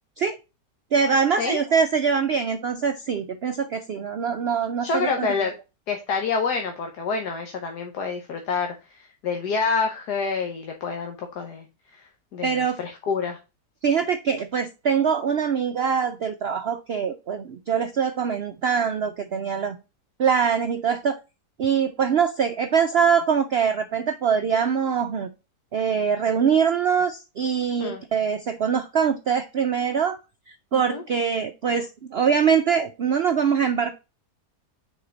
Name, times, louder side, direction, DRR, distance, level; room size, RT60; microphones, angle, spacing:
voice 1, 0.9-5.3 12.4-12.8 13.8-19.8 20.2-21.2 21.6-25.3 25.7-30.2 30.5-33.9, right 6 dB, 80° right, 9 dB, 0.5 m, -23 dB
voice 2, 4.8-5.5 5.9-11.6 12.3-13.4 27.8-28.0 30.7-31.0, left 5 dB, 75° left, 4 dB, 1.5 m, -27 dB
6.4 x 4.8 x 3.9 m, 0.28 s
omnidirectional pair, 1.8 m